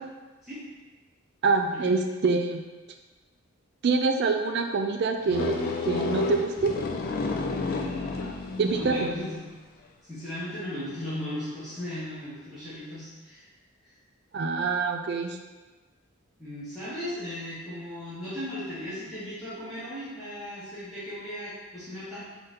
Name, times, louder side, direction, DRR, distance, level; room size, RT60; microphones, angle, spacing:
voice 1, 1.4-2.6 3.8-6.7 8.6-9.1 14.3-15.4, right 4 dB, 50° right, 4 dB, 0.3 m, -25 dB
sound 1, 5.3-9.3, left 3 dB, 40° left, 0.3 m, -31 dB
voice 2, 7.7-9.5 10.0-13.5 13.8-13.9 16.4-22.2, left 1 dB, ahead, -14 dB, 1.0 m, -37 dB
4.1 x 2.6 x 3.6 m, 1.2 s
head